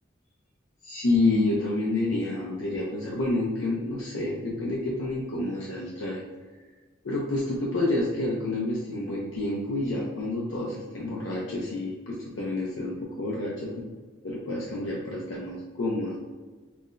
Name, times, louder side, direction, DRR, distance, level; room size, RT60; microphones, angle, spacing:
voice 1, 0.8-6.2 7.0-13.8 14.2-16.2, left 2 dB, 80° left, -4 dB, 0.6 m, -29 dB
5.6 x 2.1 x 2.5 m, 1.3 s
head